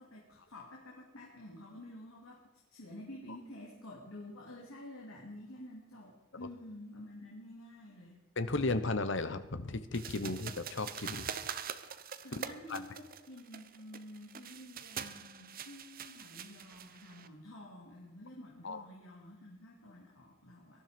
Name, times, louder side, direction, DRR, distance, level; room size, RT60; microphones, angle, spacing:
voice 1, 0.0-2.4 2.7-8.2 12.2-20.8, left 1 dB, 80° left, -3 dB, 2.9 m, -50 dB
voice 2, 8.4-11.3 12.7-12.8 18.6-18.8, left 3 dB, 60° left, 11 dB, 1.1 m, -34 dB
sound 1, 9.9-17.3, right 8 dB, 45° right, 0.8 m, -44 dB
18.5 x 12.5 x 5.2 m, 1.0 s
head